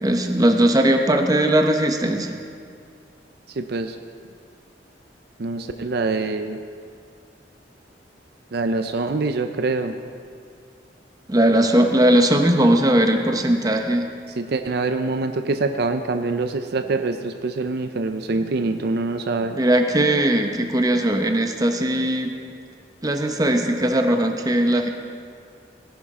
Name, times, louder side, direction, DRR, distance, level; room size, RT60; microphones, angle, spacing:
voice 1, 0.0-2.3 11.3-14.1 19.5-22.3 23.0-24.9, right 1 dB, 20° right, 4 dB, 0.9 m, -19 dB
voice 2, 3.6-3.9 5.4-6.6 8.5-9.9 14.4-19.6, right 3 dB, 60° right, 8 dB, 0.5 m, -25 dB
18.0 x 10.5 x 3.7 m, 2.2 s
head